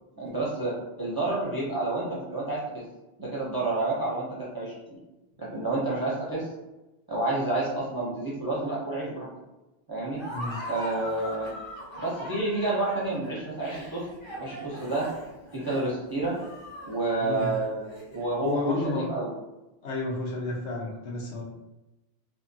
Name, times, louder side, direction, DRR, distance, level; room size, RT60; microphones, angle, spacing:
voice 1, 0.2-2.8 3.2-5.0 5.4-6.5 7.1-9.3 9.9-10.2 10.7-11.5 12.0-14.0 14.4-15.1 15.5-16.4 16.9-17.8 18.1-19.3, right 2 dB, 30° right, -6 dB, 0.4 m, -29 dB
Laughter, 10.1-18.4, equal, 30° left, 0.6 m, -40 dB
voice 2, 18.4-19.1 19.8-21.4, left 2 dB, 70° left, -3 dB, 1.0 m, -31 dB
2.6 x 2.6 x 2.6 m, 1.0 s
omnidirectional pair, 1.2 m